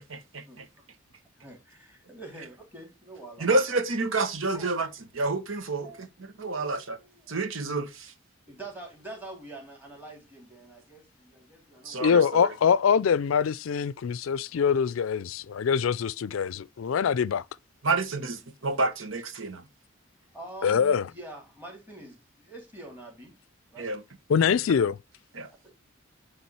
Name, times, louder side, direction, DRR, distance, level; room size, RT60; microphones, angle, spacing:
voice 1, 1.4-3.6 4.5-4.7 5.8-6.1 6.5-7.4 8.5-12.1 20.3-23.3 23.7-23.9 25.5-25.7, right 2 dB, 10° right, 3.3 m, -45 dB
voice 2, 3.4-4.9 5.1-6.1 6.4-7.0 7.3-8.1 11.8-12.5 17.8-19.6 23.8-24.0 25.3-25.5, right 3 dB, 80° right, 1.2 m, -28 dB
voice 3, 12.0-17.4 20.6-21.1 24.3-25.0, left 7 dB, 80° left, 0.4 m, -24 dB
9.6 x 3.6 x 4.4 m
head